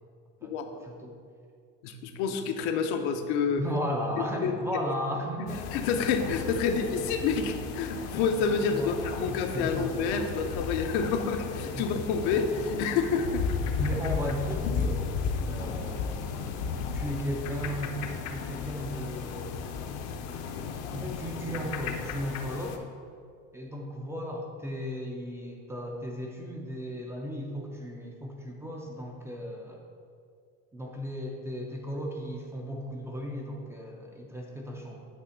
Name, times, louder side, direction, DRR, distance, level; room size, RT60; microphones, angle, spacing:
voice 1, 0.8-1.2 3.6-5.7 8.7-9.9 11.7-12.0 13.8-15.0 15.5-16.6 16.9-18.0 18.2-19.5 20.9-22.9 23.5-29.8 30.7-35.1, equal, 10° right, 0 dB, 0.3 m, -35 dB
voice 2, 1.8-3.6 4.4-4.5 5.7-13.5, left 5 dB, 85° left, 6 dB, 0.8 m, -28 dB
sound 1, 5.5-22.8, left 5 dB, 50° left, 0.6 m, -34 dB
8.3 x 3.3 x 6.3 m, 2.2 s
cardioid pair, 170°, 33 cm